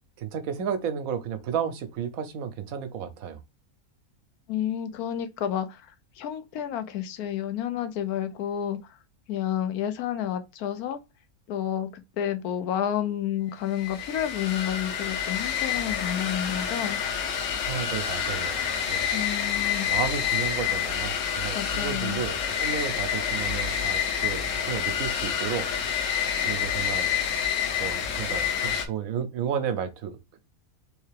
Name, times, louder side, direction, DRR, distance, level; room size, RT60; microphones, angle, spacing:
voice 1, 0.2-3.4 17.6-19.1 19.9-25.7 26.4-27.1 27.8-30.4, right 8 dB, 75° right, 1.0 m, -32 dB
voice 2, 4.5-9.0 9.3-11.0 11.5-17.0 19.1-19.9 21.5-22.2, left 10 dB, 90° left, 1.1 m, -30 dB
sound 1, 13.7-28.9, left 8 dB, 65° left, 1.0 m, -28 dB
3.4 x 3.2 x 3.2 m
omnidirectional pair, 1.5 m